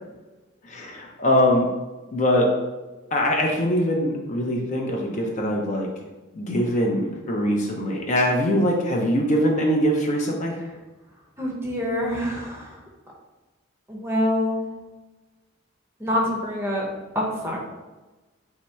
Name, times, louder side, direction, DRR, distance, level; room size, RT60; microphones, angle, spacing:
voice 1, 0.7-1.7 2.1-2.5 3.1-5.9 6.4-10.6, equal, 35° left, 0 dB, 0.5 m, -22 dB
voice 2, 11.4-12.8 13.9-14.6 16.0-16.9 17.1-17.6, left 1 dB, 10° right, -2 dB, 0.7 m, -25 dB
3.0 x 2.7 x 4.4 m, 1.2 s
head